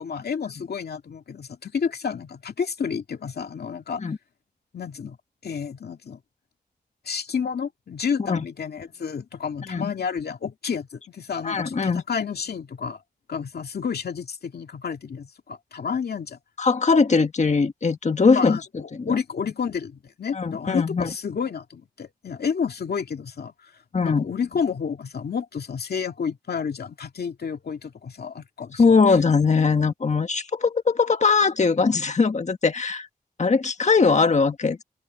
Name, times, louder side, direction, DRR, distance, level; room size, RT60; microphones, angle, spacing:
voice 1, 0.0-4.0 4.7-5.2 5.4-6.2 7.0-13.0 13.3-16.4 18.3-23.7 24.0-28.8, left 6 dB, 80° left, 2.2 m, -30 dB
voice 2, 11.4-12.0 16.6-18.6 18.9-19.2 20.3-21.1 23.9-24.2 28.8-33.1 33.4-34.8, left 4 dB, 45° left, 1.5 m, -21 dB
open air
wide cardioid pair, 90°, 16 cm